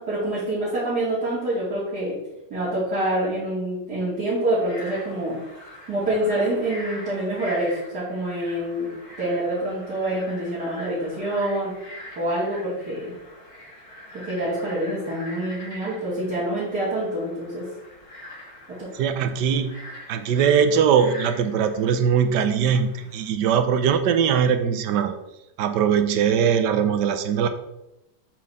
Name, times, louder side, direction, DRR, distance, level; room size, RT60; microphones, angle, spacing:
voice 1, 0.0-2.2 2.5-5.4 5.9-8.9 9.2-11.7 12.2-13.1 14.1-17.6, right 1 dB, 65° right, -11 dB, 3.2 m, -26 dB
Frog, 4.5-23.3, left 1 dB, 45° left, 3.2 m, -43 dB
voice 2, 18.9-19.8 20.1-25.2 25.6-27.5, right 7 dB, 80° right, 9 dB, 1.3 m, -21 dB
8.5 x 4.2 x 4.1 m, 0.92 s
omnidirectional pair, 1.8 m